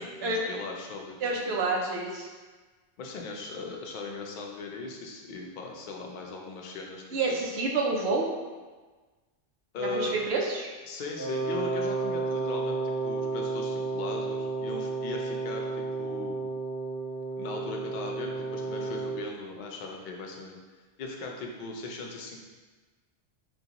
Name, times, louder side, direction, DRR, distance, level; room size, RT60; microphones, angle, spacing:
voice 1, 0.0-1.6 3.0-7.4 9.7-10.2 10.9-16.4 17.4-20.6 21.0-22.4, left 3 dB, 60° left, 0 dB, 0.5 m, -38 dB
voice 2, 1.2-2.3 7.1-8.3 9.8-10.6, right 3 dB, 70° right, 0 dB, 0.8 m, -28 dB
Wind instrument woodwind instrument, 11.2-19.2, right 3 dB, 45° right, 1.3 m, -32 dB
3.8 x 2.2 x 2.8 m, 1.3 s
omnidirectional pair, 1.2 m